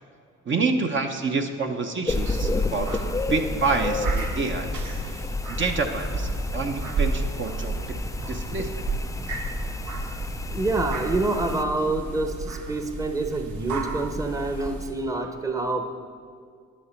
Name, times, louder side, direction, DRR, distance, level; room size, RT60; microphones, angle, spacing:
voice 1, 0.5-4.7 5.0-7.8 8.3-8.8, right 4 dB, 40° right, 4 dB, 0.9 m, -28 dB
sound 1, 2.1-11.6, left 3 dB, 10° left, 0.3 m, -31 dB
sound 2, 2.2-14.9, right 3 dB, 75° right, 1.2 m, -32 dB
voice 2, 10.5-15.8, right 2 dB, 10° right, 5 dB, 0.9 m, -27 dB
11.0 x 10.0 x 4.4 m, 2.2 s
cardioid pair, 90°, 30 cm